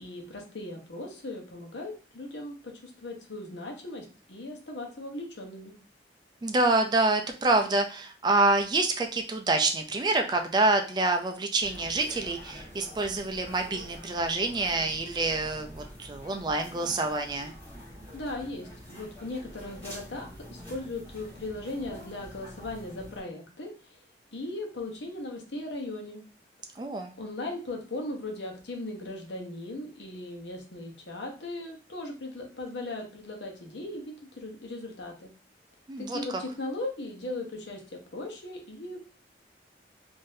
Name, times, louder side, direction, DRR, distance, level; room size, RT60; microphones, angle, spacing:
voice 1, 0.0-2.5 2.8-5.7 18.1-24.0 24.3-26.2 27.2-35.3 36.0-39.0, left 2 dB, 75° left, 1 dB, 0.9 m, -38 dB
voice 2, 6.4-17.5 26.8-27.1 35.9-36.2, right 2 dB, 25° right, 5 dB, 0.4 m, -27 dB
sound 1, 11.6-23.2, equal, 10° left, 1.7 m, -46 dB
3.7 x 2.6 x 2.6 m, 0.36 s
head